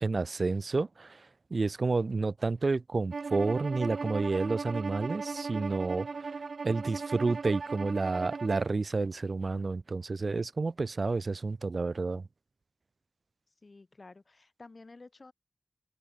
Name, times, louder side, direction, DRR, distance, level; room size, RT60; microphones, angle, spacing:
voice 1, 0.0-1.2 1.5-6.1 6.6-12.2, right 3 dB, 55° right, 0.8 m, -30 dB
Bowed string instrument, 3.1-8.7, right 4 dB, 70° right, 1.1 m, -37 dB
voice 2, 13.6-15.3, left 3 dB, 45° left, 7.7 m, -52 dB
open air
wide cardioid pair, 80°, 0 cm